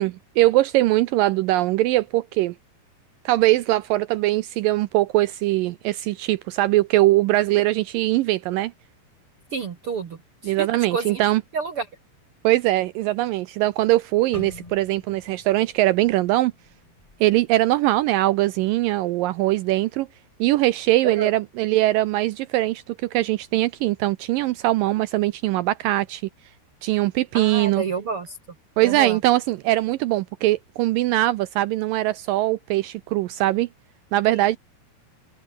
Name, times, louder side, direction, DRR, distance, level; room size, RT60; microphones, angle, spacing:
voice 1, 0.0-2.5 3.3-8.7 10.4-11.4 12.4-16.5 17.2-20.1 20.4-26.2 26.8-27.8 28.8-33.7 34.1-34.6, right 16 dB, 85° right, 1.9 m, -21 dB
voice 2, 9.5-11.2 11.5-11.9 21.0-21.3 27.3-28.4 28.8-29.2 34.3-34.5, right 5 dB, 55° right, 1.6 m, -30 dB
sound 1, 14.3-18.4 18.7-19.0 19.6-20.0, left 2 dB, 45° left, 0.4 m, -46 dB
omnidirectional pair, 4.7 m